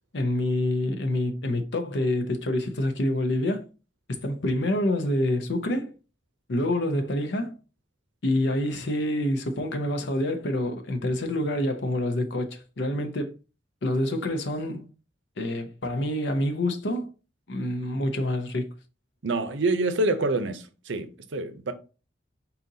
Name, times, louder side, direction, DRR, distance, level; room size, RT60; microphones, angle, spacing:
voice 1, 0.1-3.7 4.1-5.9 6.5-7.6 8.2-13.3 13.8-14.9 15.4-17.1 17.5-18.7, left 1 dB, 75° left, 0.7 m, -27 dB
voice 2, 19.2-21.7, right 2 dB, 90° right, 0.6 m, -26 dB
4.2 x 3.9 x 2.7 m
head